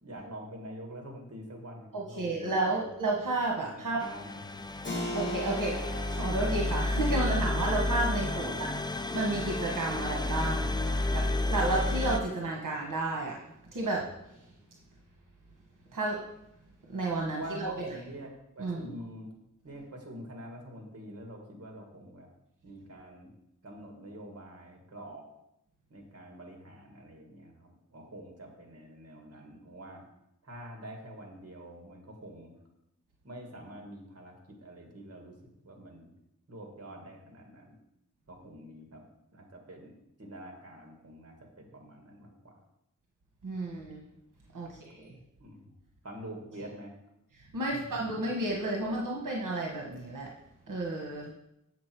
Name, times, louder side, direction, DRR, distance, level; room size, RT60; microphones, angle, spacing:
voice 1, 0.0-2.5 3.5-4.7 8.3-8.8 17.2-19.3 19.6-22.3 22.6-23.3 23.6-25.2 25.9-30.0 30.4-32.5 33.2-35.3 35.6-36.1 36.5-37.8 38.3-39.0 39.3-39.9 40.2-42.5 44.6-44.7 45.4-45.7 46.0-46.9 47.7-48.0, right 1 dB, 50° right, 1 dB, 2.1 m, -46 dB
voice 2, 1.9-4.0 5.1-5.8 6.1-8.5 9.1-10.7 11.1-13.4 13.7-14.1 15.9-16.2 16.9-17.9 18.6-18.9 43.4-44.0 44.5-45.1 47.5-50.3 50.7-51.3, right 2 dB, 80° right, -1 dB, 1.2 m, -31 dB
sound 1, 4.0-12.2, left 2 dB, 15° left, 0.5 m, -31 dB
Keyboard (musical), 4.8-15.2, left 1 dB, 35° left, 1.8 m, -43 dB
7.4 x 7.2 x 4.6 m, 0.83 s
wide cardioid pair, 80°, 31 cm